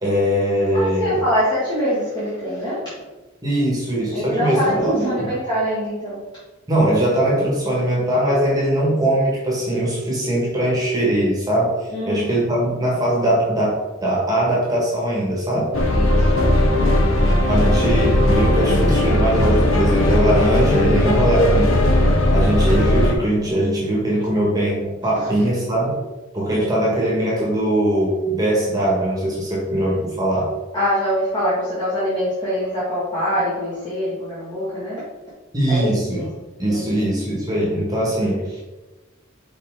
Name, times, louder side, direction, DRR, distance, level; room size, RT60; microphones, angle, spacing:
voice 1, 0.0-1.2 3.4-5.3 6.7-15.7 17.5-21.8 22.3-26.0 26.3-30.5 35.5-36.2 36.6-38.6, right 1 dB, 20° right, -5 dB, 1.6 m, -21 dB
voice 2, 0.7-2.9 4.1-6.2 11.9-12.3 15.9-17.0 25.1-25.5 30.7-35.0 35.7-36.3 36.7-37.0, equal, 20° left, -11 dB, 1.9 m, -24 dB
sound 1, 15.7-23.1, left 1 dB, 80° left, 1.0 m, -17 dB
5.7 x 4.7 x 3.7 m, 1.2 s
head